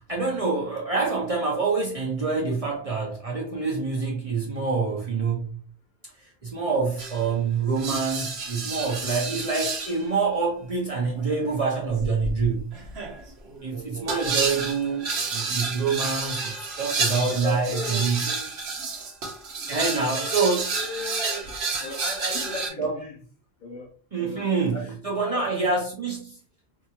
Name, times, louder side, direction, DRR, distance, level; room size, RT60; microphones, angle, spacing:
voice 1, 0.1-5.6 6.2-12.7 13.6-18.3 19.7-20.7 22.8-22.9 24.1-26.4, right 4 dB, 45° right, 0.5 m, -26 dB
sound 1, 7.0-7.3 7.8-10.1 10.9-22.7, right 4 dB, 75° right, 1.0 m, -30 dB
voice 2, 17.2-18.6 19.7-21.5 21.8-23.2 23.6-25.8, left 2 dB, 55° left, 0.6 m, -37 dB
2.8 x 2.3 x 2.8 m
omnidirectional pair, 1.1 m